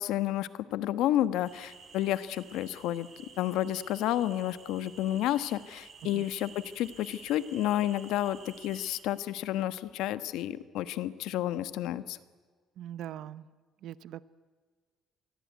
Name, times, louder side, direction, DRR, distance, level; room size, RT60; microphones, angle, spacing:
voice 1, 0.0-3.1 3.4-12.2, left 13 dB, 80° left, 13 dB, 1.3 m, -31 dB
sound 1, 1.4-9.0, right 5 dB, 35° right, 5.2 m, -52 dB
voice 2, 12.8-13.5 13.8-14.3, right 11 dB, 60° right, 17 dB, 0.8 m, -41 dB
28.0 x 22.0 x 9.4 m, 1.5 s
cardioid pair, 160°, 0 cm